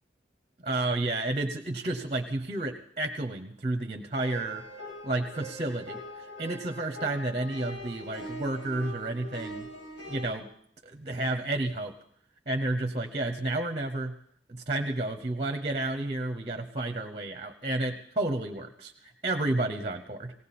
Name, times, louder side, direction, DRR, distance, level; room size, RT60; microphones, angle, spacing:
voice 1, 0.6-4.6 5.0-9.7 10.1-10.5 10.8-11.9 12.5-14.1 14.5-20.3, right 2 dB, 35° right, 5 dB, 0.8 m, -31 dB
sound 1, 4.1-10.3, equal, 90° left, 2.3 m, -42 dB
18.5 x 17.0 x 4.2 m, 0.66 s
head